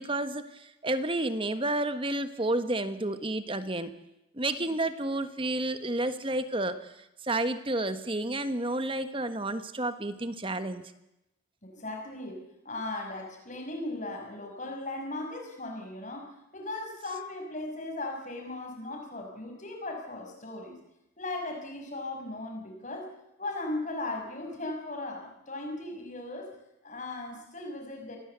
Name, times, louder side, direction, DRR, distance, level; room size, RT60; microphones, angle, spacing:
voice 1, 0.0-3.9 4.3-6.8 7.2-10.8, right 2 dB, 25° right, 11 dB, 1.3 m, -30 dB
voice 2, 11.6-20.8 21.2-23.1 23.4-26.5 26.8-28.2, left 2 dB, 40° left, 3 dB, 5.9 m, -37 dB
25.5 x 17.5 x 8.1 m, 0.89 s
head